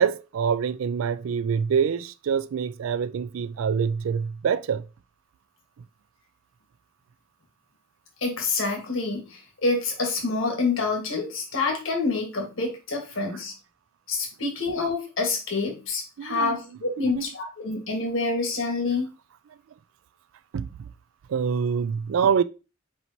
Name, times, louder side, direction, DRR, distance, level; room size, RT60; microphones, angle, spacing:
voice 1, 0.0-4.8 16.2-16.6 17.0-17.2 20.5-20.9 21.3-22.4, right 6 dB, 75° right, 0.3 m, -25 dB
voice 2, 8.2-13.5 14.1-19.1, left 3 dB, 75° left, 1.3 m, -27 dB
4.5 x 4.4 x 2.7 m
head